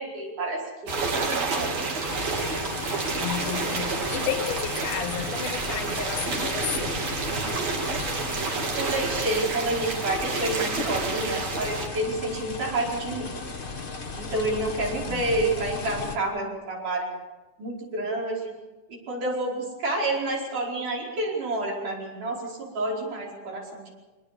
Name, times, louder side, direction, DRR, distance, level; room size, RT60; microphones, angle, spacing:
voice 1, 0.0-1.8 8.8-13.3 14.2-17.1 17.6-18.5 18.9-23.9, right 2 dB, 75° right, 6.5 m, -29 dB
sound 1, 0.9-11.9, right 3 dB, 55° right, 3.8 m, -29 dB
sound 2, 2.1-16.2, left 4 dB, 45° left, 0.6 m, -36 dB
voice 2, 3.2-7.0 15.1-15.2, left 9 dB, 75° left, 2.9 m, -32 dB
24.0 x 20.0 x 6.9 m
omnidirectional pair, 3.7 m